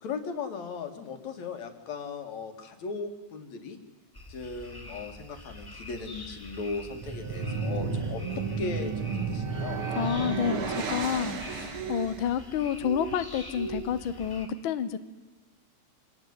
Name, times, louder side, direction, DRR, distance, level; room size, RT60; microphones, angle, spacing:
voice 1, 0.0-3.8 4.3-9.8, left 4 dB, 60° left, 7 dB, 3.3 m, -37 dB
sound 1, 4.1-14.5, right 2 dB, 5° left, 3.1 m, -43 dB
sound 2, 6.9-12.3, right 4 dB, 45° right, 2.3 m, -32 dB
voice 2, 9.9-15.0, left 9 dB, 80° left, 12 dB, 1.1 m, -29 dB
26.0 x 18.5 x 9.6 m, 1.2 s
omnidirectional pair, 3.8 m